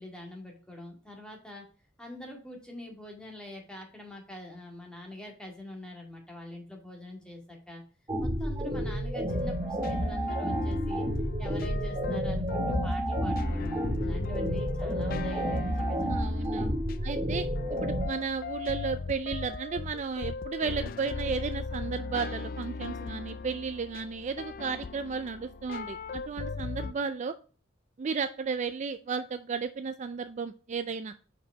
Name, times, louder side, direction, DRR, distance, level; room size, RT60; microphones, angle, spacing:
voice 1, 0.0-1.7 2.0-7.8 8.2-11.1 11.4-16.7, left 1 dB, 5° left, 0 dB, 2.0 m, -45 dB
sound 1, 8.1-18.1, equal, 20° right, 1.0 m, -30 dB
sound 2, 9.3-26.9, left 4 dB, 50° left, 0.4 m, -38 dB
voice 2, 16.0-16.7 17.0-17.5 17.8-27.3 28.0-31.1, right 5 dB, 40° right, 10 dB, 0.4 m, -34 dB
5.5 x 4.8 x 4.6 m, 0.39 s
head